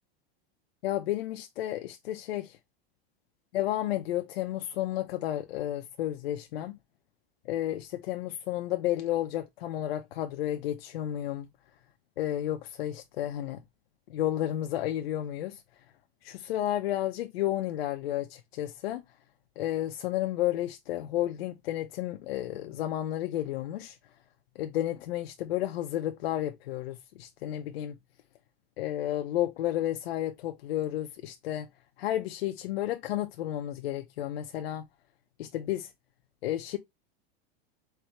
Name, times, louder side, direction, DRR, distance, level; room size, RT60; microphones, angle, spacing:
voice 1, 0.8-2.6 3.5-6.8 7.4-11.5 12.2-13.6 14.1-15.6 16.2-19.0 19.6-24.0 24.6-28.0 28.8-31.7 32.0-34.9 35.4-35.9 36.4-36.8, left 13 dB, 85° left, 0.7 m, -32 dB
4.7 x 3.3 x 2.9 m
supercardioid pair, 135°, 30 cm